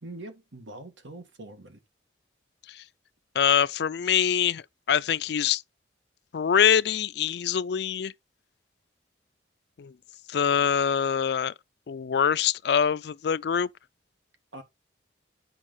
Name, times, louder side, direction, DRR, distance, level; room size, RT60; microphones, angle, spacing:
voice 1, 0.0-1.8 14.5-14.6, right 1 dB, 80° right, 1.7 m, -43 dB
voice 2, 3.4-4.6 4.9-5.6 6.3-8.1 9.8-9.9 10.3-11.5 11.9-13.7, left 8 dB, 60° left, 0.3 m, -24 dB
8.7 x 5.4 x 3.9 m
head